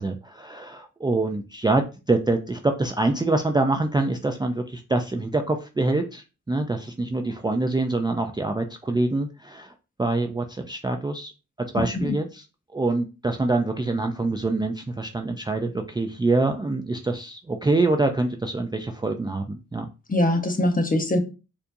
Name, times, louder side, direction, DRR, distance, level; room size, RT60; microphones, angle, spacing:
voice 1, 0.0-9.7 10.0-11.3 11.7-12.4 12.7-19.9, right 2 dB, 15° right, 0.4 m, -25 dB
voice 2, 11.7-12.2 20.1-21.2, left 1 dB, 25° left, 0.8 m, -23 dB
4.3 x 2.6 x 2.6 m
cardioid pair, 65°, 32 cm